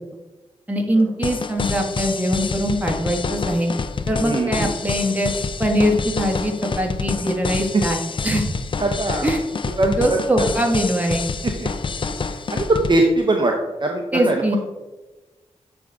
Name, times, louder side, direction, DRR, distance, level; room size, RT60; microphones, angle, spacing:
voice 1, 0.7-3.7 4.1-5.3 5.6-8.5 9.2-9.4 10.0-11.2 14.1-14.6, equal, 10° right, 1 dB, 1.5 m, -22 dB
sound 1, 1.2-12.9, left 4 dB, 40° left, 0.4 m, -27 dB
voice 2, 4.2-4.7 7.7-7.8 8.8-9.3 9.8-10.2 11.6-11.7 12.5-13.5 13.8-14.6, right 2 dB, 40° right, 2 dB, 0.7 m, -20 dB
9.5 x 3.6 x 3.9 m, 1.1 s
cardioid pair, 65°, 12 cm